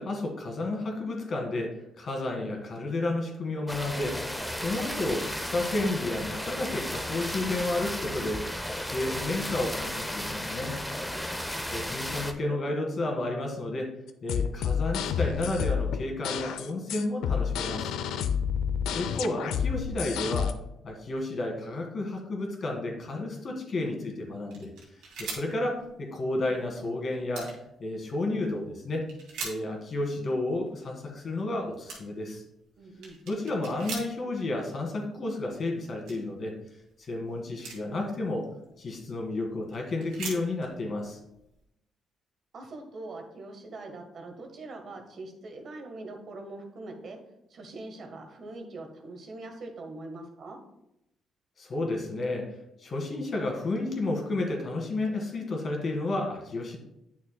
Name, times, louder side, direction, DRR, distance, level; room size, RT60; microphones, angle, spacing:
voice 1, 0.0-10.8 11.6-13.9 14.2-17.9 18.9-20.5 20.8-24.7 25.2-27.5 27.8-29.1 29.4-32.4 33.3-36.5 37.1-38.5 38.8-41.2 51.6-52.5 52.8-56.8, left 2 dB, 50° left, 1 dB, 1.8 m, -31 dB
sound 1, 3.7-12.3, left 1 dB, 5° left, 0.7 m, -34 dB
sound 2, 14.1-20.5, left 7 dB, 90° left, 0.4 m, -29 dB
sound 3, 24.4-25.9 26.2-26.3 26.5-26.7 27.1-27.6 28.3-28.6 29.1-29.9 30.5-30.9 31.5-31.6 31.9-32.3 32.7-34.4 34.8-34.9 35.2-36.3 36.9-38.0 38.6-39.4 39.7-41.6, right 4 dB, 90° right, 2.3 m, -41 dB
voice 2, 32.8-33.2 42.5-47.2 47.5-50.6, right 2 dB, 55° right, 3 dB, 1.3 m, -42 dB
9.0 x 6.2 x 2.2 m, 0.83 s
cardioid pair, 90°, 0 cm